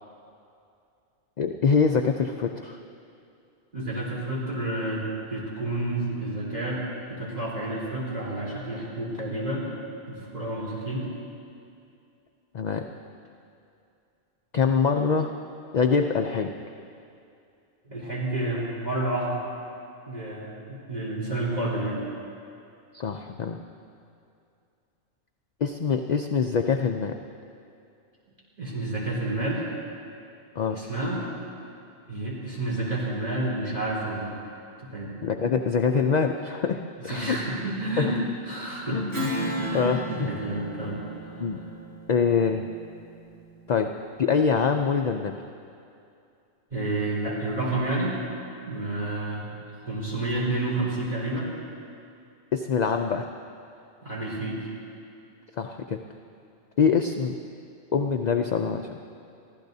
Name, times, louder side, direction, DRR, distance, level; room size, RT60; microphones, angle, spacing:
voice 1, 1.4-2.8 12.5-12.8 14.5-15.3 15.7-16.5 22.9-23.6 25.6-27.2 30.6-30.8 35.2-37.4 38.0-38.1 38.9-39.3 39.7-40.0 41.4-41.6 42.1-42.7 43.7-45.4 52.5-53.3 55.6-56.0 56.8-57.3 57.9-58.9, left 6 dB, 55° left, 4 dB, 0.5 m, -24 dB
voice 2, 3.7-6.8 7.1-9.7 10.1-11.1 17.9-19.4 20.1-22.0 28.6-29.7 30.7-31.5 32.1-34.4 34.8-35.1 37.1-38.2 38.4-39.0 39.4-41.5 46.7-48.2 48.6-51.5 54.0-54.7, right 2 dB, 35° right, -7 dB, 3.9 m, -30 dB
Strum, 39.1-44.0, equal, 65° right, 4.2 m, -35 dB
23.5 x 15.0 x 2.7 m, 2.5 s
omnidirectional pair, 1.2 m